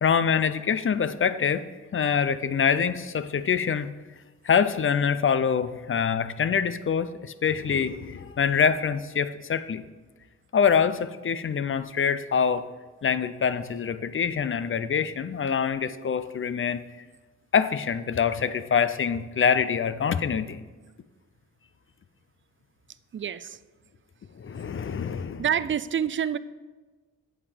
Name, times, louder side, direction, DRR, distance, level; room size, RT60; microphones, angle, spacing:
voice 1, 0.0-1.6 1.9-3.9 4.4-9.8 10.5-12.7 13.0-16.8 17.5-20.6 24.4-25.4, left 7 dB, 40° left, 13 dB, 0.5 m, -25 dB
voice 2, 23.1-23.6 25.4-26.4, right 8 dB, 40° right, 16 dB, 0.4 m, -27 dB
8.7 x 6.6 x 5.0 m, 1.3 s
cardioid pair, 80°, 31 cm